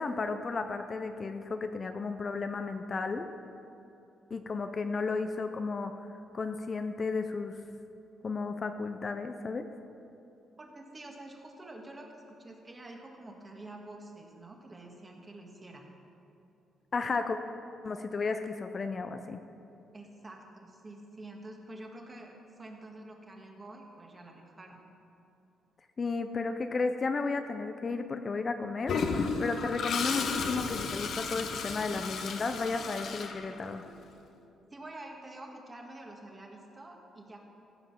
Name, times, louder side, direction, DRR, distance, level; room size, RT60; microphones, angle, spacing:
voice 1, 0.0-3.3 4.3-5.9 6.3-7.6 8.2-9.7 16.9-17.4 17.8-19.4 26.0-29.0 29.4-33.8, left 4 dB, 40° left, 7 dB, 0.5 m, -33 dB
voice 2, 10.6-15.8 19.9-24.8 34.7-37.4, right 2 dB, 25° right, 1 dB, 1.6 m, -48 dB
Toilet flush, 28.9-33.9, left 5 dB, 65° left, 0.8 m, -33 dB
15.0 x 5.2 x 6.1 m, 2.8 s
cardioid pair, 90°, 0 cm